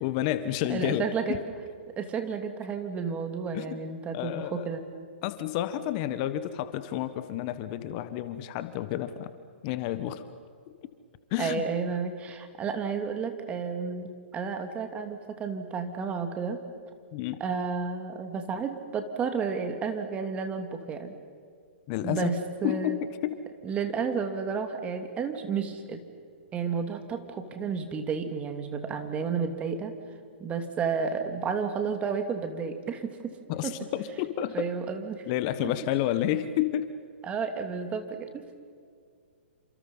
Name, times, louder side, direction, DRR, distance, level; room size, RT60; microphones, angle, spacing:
voice 1, 0.0-1.4 3.5-3.7 4.1-4.7 5.2-9.3 9.6-10.3 11.3-11.6 17.1-17.4 21.9-22.3 22.6-23.0 23.2-23.3 33.5-34.7 35.3-36.9, left 12 dB, 40° left, 12 dB, 1.4 m, -30 dB
voice 2, 0.7-1.4 2.0-4.8 11.4-16.6 17.4-21.1 22.0-23.0 23.6-26.0 26.5-29.9 30.4-33.3 33.6-33.7 34.5-35.2 37.2-38.4, right 5 dB, 20° right, 6 dB, 2.7 m, -31 dB
29.5 x 27.0 x 5.6 m, 2.2 s
hypercardioid pair, 125°, 6 cm